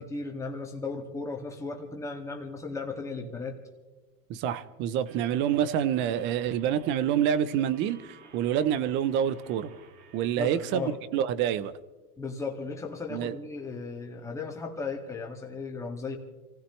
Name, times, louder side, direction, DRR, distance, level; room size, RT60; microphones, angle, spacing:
voice 1, 0.0-3.6 10.4-11.0 12.2-16.2, left 4 dB, 5° left, 0 dB, 2.0 m, -36 dB
voice 2, 4.3-9.7 10.1-11.7 13.1-13.3, right 9 dB, 25° right, 16 dB, 0.6 m, -27 dB
sound 1, 5.0-10.9, right 6 dB, 50° right, 2.3 m, -54 dB
28.5 x 16.0 x 3.2 m, 1.2 s
supercardioid pair, 140°, 48 cm